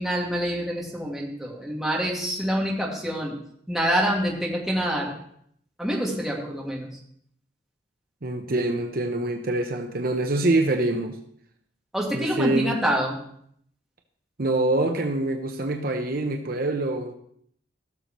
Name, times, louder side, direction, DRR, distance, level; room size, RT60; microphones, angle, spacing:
voice 1, 0.0-3.3 3.7-5.1 5.8-6.9 11.9-13.2, equal, ahead, -4 dB, 2.2 m, -26 dB
voice 2, 8.2-11.2 12.1-12.7 14.4-17.1, right 2 dB, 55° right, 4 dB, 0.9 m, -25 dB
16.5 x 6.8 x 3.1 m, 0.66 s
head